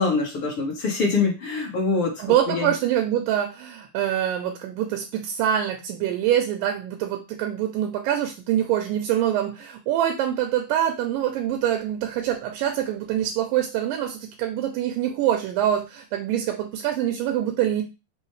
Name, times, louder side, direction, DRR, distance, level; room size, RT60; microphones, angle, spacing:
voice 1, 0.0-2.7, left 4 dB, 50° left, -3 dB, 1.8 m, -24 dB
voice 2, 2.2-17.8, right 11 dB, 80° right, 4 dB, 2.1 m, -25 dB
5.6 x 2.6 x 3.1 m, 0.27 s
omnidirectional pair, 4.0 m